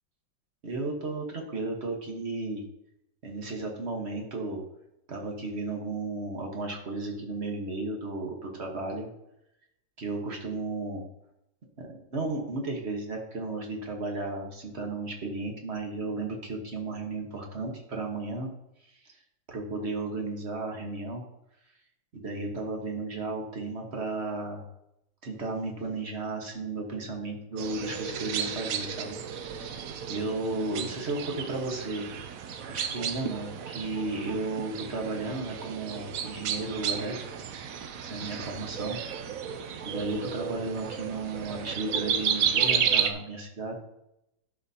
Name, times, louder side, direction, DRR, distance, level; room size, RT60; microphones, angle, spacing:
voice 1, 0.6-2.6 3.2-4.6 5.1-9.1 10.0-11.0 11.8-18.5 18.9-19.2 19.5-21.2 22.1-24.6 25.2-29.2 29.4-32.0 32.7-37.2 38.0-39.0 39.8-43.8, right 2 dB, 40° right, 1 dB, 1.3 m, -34 dB
sound 1, 27.6-43.1, right 8 dB, 75° right, 0.8 m, -32 dB
12.0 x 5.9 x 2.8 m, 0.83 s
omnidirectional pair, 2.1 m